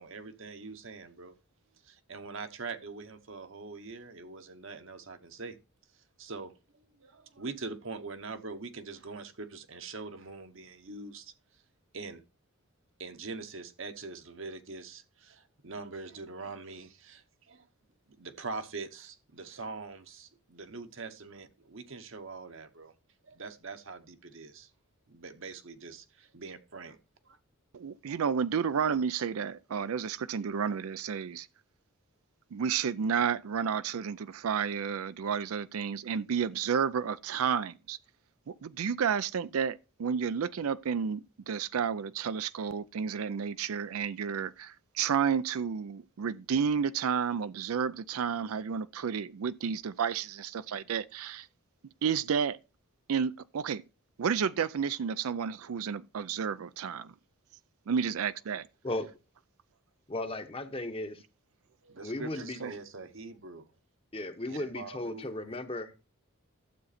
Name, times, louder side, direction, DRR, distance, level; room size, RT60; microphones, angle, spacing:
voice 1, 0.0-1.4 1.8-5.6 6.2-11.3 11.9-12.2 13.0-17.7 18.1-22.9 23.2-24.7 25.1-27.0 27.2-27.4 61.8-63.7 64.5-65.3, right 3 dB, 60° right, 1.0 m, -43 dB
voice 2, 27.7-31.5 32.5-38.0 38.5-51.5 52.0-52.6 53.1-53.8 54.2-57.1 57.9-58.7 62.6-62.7, right 7 dB, 75° right, 0.4 m, -31 dB
voice 3, 60.1-61.2 62.0-62.6 64.1-66.0, left 2 dB, 25° left, 0.9 m, -36 dB
12.0 x 7.7 x 4.2 m
head